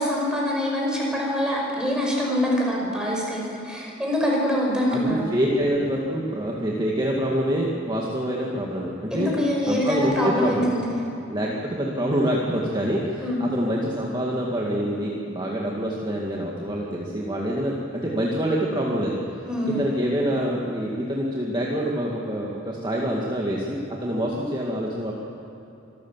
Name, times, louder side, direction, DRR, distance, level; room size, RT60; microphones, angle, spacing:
voice 1, 0.0-5.3 9.1-11.0 13.2-13.4 19.5-19.8, equal, 5° right, -3 dB, 5.6 m, -24 dB
voice 2, 4.9-9.3 9.7-10.7 11.3-19.2 19.7-25.1, equal, 25° right, -3 dB, 2.0 m, -26 dB
25.0 x 14.0 x 7.3 m, 3.0 s
head